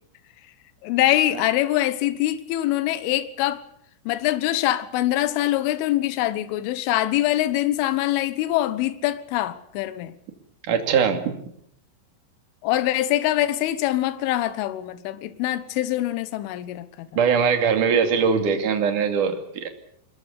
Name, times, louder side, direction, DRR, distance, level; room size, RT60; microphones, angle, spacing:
voice 1, 0.8-3.6 4.1-10.2 12.6-17.1, left 14 dB, 75° left, 3.6 m, -24 dB
voice 2, 10.7-11.3 17.1-19.7, right 6 dB, 45° right, 3.4 m, -21 dB
22.0 x 21.5 x 8.4 m
omnidirectional pair, 5.9 m